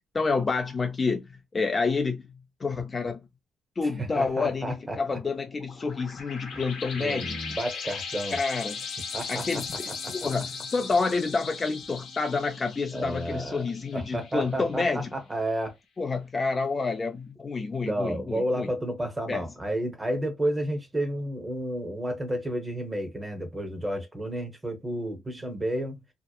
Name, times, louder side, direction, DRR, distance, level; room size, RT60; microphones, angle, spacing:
voice 1, 0.1-3.3 3.8-7.4 8.3-8.8 9.3-9.7 10.1-15.1 16.0-18.7 19.3-19.4, left 4 dB, 30° left, 0.4 m, -28 dB
voice 2, 4.0-5.2 6.5-6.6 7.0-8.4 9.1-9.6 10.0-10.1 12.9-13.6 13.9-15.7 17.8-26.0, right 1 dB, 20° right, 0.9 m, -31 dB
sound 1, 5.5-14.7, left 5 dB, 70° left, 0.8 m, -38 dB
2.8 x 2.0 x 2.3 m
cardioid pair, 90°, 0 cm